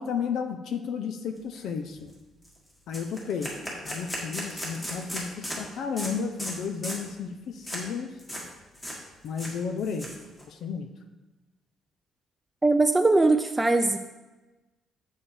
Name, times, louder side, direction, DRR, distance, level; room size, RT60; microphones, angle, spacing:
voice 1, 0.0-2.1 2.9-3.5 3.9-8.1 9.2-10.1 10.5-10.9, left 6 dB, 70° left, 6 dB, 0.6 m, -32 dB
sound 1, 1.5-1.7 2.0-2.1 2.4-2.6 2.9-5.6 6.0-6.1 6.4-6.6 6.8-7.1 7.6-7.8 8.2-8.5 8.7-9.0 9.2-10.4, equal, 15° left, 1.7 m, -36 dB
voice 2, 12.6-14.0, right 2 dB, 10° right, 5 dB, 0.3 m, -21 dB
7.3 x 6.4 x 3.4 m, 1.1 s
cardioid pair, 135°, 0 cm